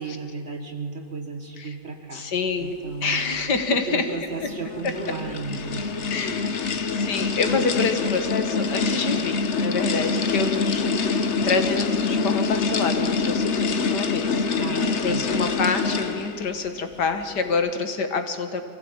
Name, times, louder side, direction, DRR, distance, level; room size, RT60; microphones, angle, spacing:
voice 1, 0.0-2.3 2.6-3.2 3.7-5.8 6.3-6.7 14.6-15.3, right 4 dB, 35° right, 5 dB, 1.9 m, -34 dB
voice 2, 2.1-4.1 6.1-6.7 7.0-18.6, left 4 dB, 65° left, 8 dB, 1.9 m, -27 dB
sound 1, 4.3-16.5, left 4 dB, 45° left, 1.2 m, -25 dB
23.5 x 16.5 x 8.7 m, 2.5 s
omnidirectional pair, 2.0 m